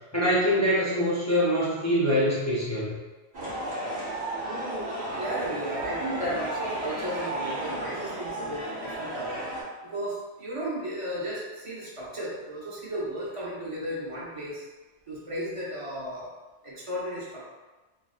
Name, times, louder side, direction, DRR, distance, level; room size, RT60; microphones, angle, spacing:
voice 1, 0.1-2.9, equal, 30° left, -8 dB, 0.3 m, -24 dB
sound 1, 3.3-9.6, right 1 dB, 70° right, 1.1 m, -33 dB
voice 2, 5.1-9.4 9.9-14.7 15.1-16.3 16.6-17.5, right 1 dB, 35° right, -7 dB, 0.7 m, -34 dB
3.4 x 2.2 x 2.4 m, 1.2 s
omnidirectional pair, 1.1 m